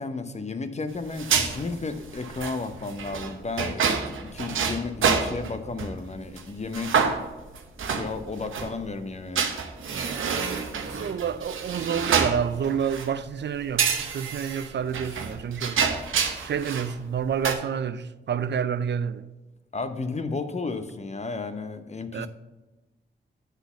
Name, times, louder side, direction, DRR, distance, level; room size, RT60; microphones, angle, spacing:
voice 1, 0.0-7.1 7.9-9.5 19.7-22.3, left 3 dB, 35° left, 0.8 m, -33 dB
sound 1, 1.0-6.0 6.4-6.5 6.7-8.7 9.4-13.2 13.8-16.9 17.2-17.5, right 6 dB, 85° right, 0.8 m, -27 dB
voice 2, 11.0-15.9 16.4-19.3 22.1-22.3, right 7 dB, 60° right, 0.5 m, -28 dB
8.2 x 4.0 x 6.9 m
cardioid pair, 55°, 20 cm